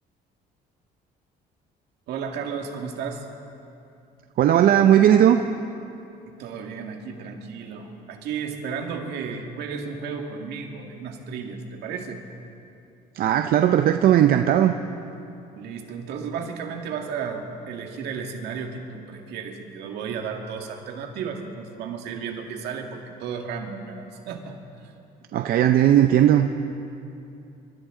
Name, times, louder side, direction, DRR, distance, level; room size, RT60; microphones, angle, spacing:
voice 1, 2.1-3.3 6.3-12.2 15.6-22.9 23.2-24.9, right 6 dB, 80° right, 3 dB, 2.0 m, -33 dB
voice 2, 4.4-5.4 13.2-14.7 25.3-26.6, right 11 dB, 60° right, 7 dB, 0.6 m, -17 dB
27.5 x 14.0 x 3.8 m, 2.7 s
cardioid pair, 110°, 17 cm